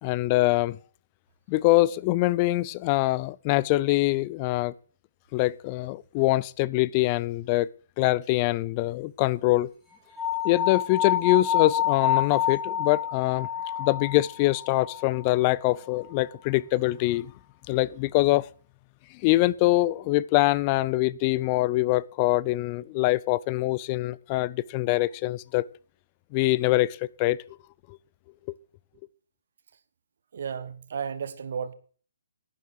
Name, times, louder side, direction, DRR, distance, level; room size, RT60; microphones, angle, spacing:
voice 1, 0.0-0.8 1.5-4.7 5.3-7.7 8.0-9.7 10.4-13.5 13.7-17.3 17.7-18.5 19.2-25.6 26.3-27.4, left 18 dB, 30° left, 0.5 m, -24 dB
sound 1, 10.2-15.3, left 10 dB, ahead, 4.1 m, -28 dB
voice 2, 30.3-31.7, right 6 dB, 60° right, 1.6 m, -33 dB
11.5 x 9.5 x 4.8 m
hypercardioid pair, 150°, 0 cm